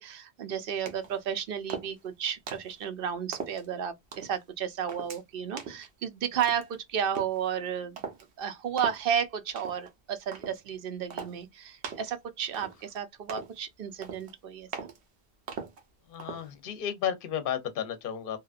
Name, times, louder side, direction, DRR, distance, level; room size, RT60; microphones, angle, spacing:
voice 1, 0.0-8.0 8.4-14.9, right 8 dB, 65° right, 0.7 m, -33 dB
sound 1, 0.9-1.2 1.7-2.1 2.5-2.8 3.3-3.7 4.1-4.4 4.9-5.2 5.6-5.9 6.4-6.7 7.1-7.4 8.0-8.2 8.8-9.0 9.6-9.9 10.3-10.6 11.1-11.4 11.8-12.1 12.5-13.0 13.3-13.6 14.0-14.3 14.7-15.0 15.5-15.8 16.2-16.5, right 6 dB, 85° right, 1.0 m, -40 dB
voice 2, 16.1-18.4, left 9 dB, 60° left, 0.8 m, -33 dB
2.8 x 2.3 x 2.4 m
omnidirectional pair, 1.1 m